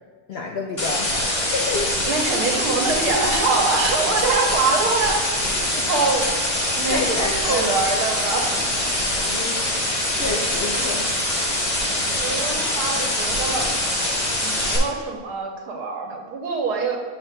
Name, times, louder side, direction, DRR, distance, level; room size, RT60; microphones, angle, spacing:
voice 1, 0.3-2.0 5.7-5.9 6.9-7.8 9.3-9.7 10.1-11.2, left 3 dB, 85° left, 2 dB, 0.5 m, -29 dB
sound 1, 0.8-14.8, left 1 dB, 25° left, 0.9 m, -24 dB
voice 2, 2.1-5.3 5.9-6.3 6.7-8.7 12.2-13.7 14.4-17.0, right 4 dB, 90° right, 2 dB, 1.4 m, -24 dB
8.9 x 6.1 x 2.2 m, 1.5 s
omnidirectional pair, 1.7 m